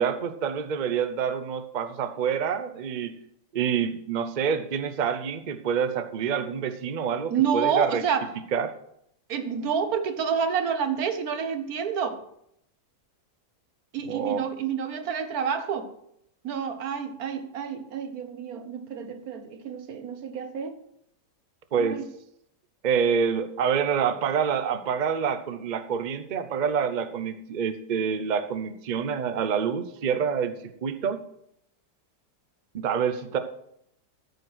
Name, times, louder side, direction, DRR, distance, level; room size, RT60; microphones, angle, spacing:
voice 1, 0.0-3.1 3.5-8.0 8.5-8.7 14.1-14.5 21.7-22.0 22.8-30.5 30.8-31.2 32.7-33.4, right 7 dB, 85° right, 9 dB, 0.4 m, -27 dB
voice 2, 7.3-8.3 9.3-12.2 13.9-15.9 16.4-20.8 21.7-22.0, right 7 dB, 60° right, 9 dB, 1.4 m, -28 dB
13.5 x 5.3 x 6.1 m, 0.75 s
omnidirectional pair, 1.9 m